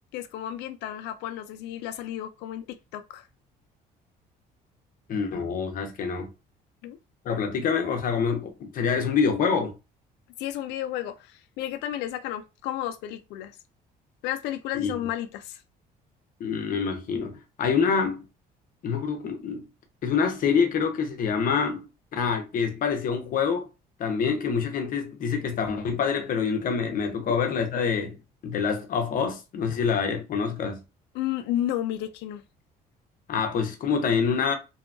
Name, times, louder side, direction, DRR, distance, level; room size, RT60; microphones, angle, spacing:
voice 1, 0.1-3.3 6.8-7.0 10.4-13.6 14.2-15.6 27.3-27.4 31.1-32.4, left 12 dB, 90° left, 0.4 m, -32 dB
voice 2, 5.1-6.3 7.2-9.7 14.8-14.9 16.4-18.2 18.8-19.6 20.0-21.8 22.1-23.7 24.0-28.2 28.4-30.8 33.3-34.5, left 6 dB, 55° left, 0.7 m, -26 dB
2.7 x 2.3 x 2.4 m
cardioid pair, 110°, 17 cm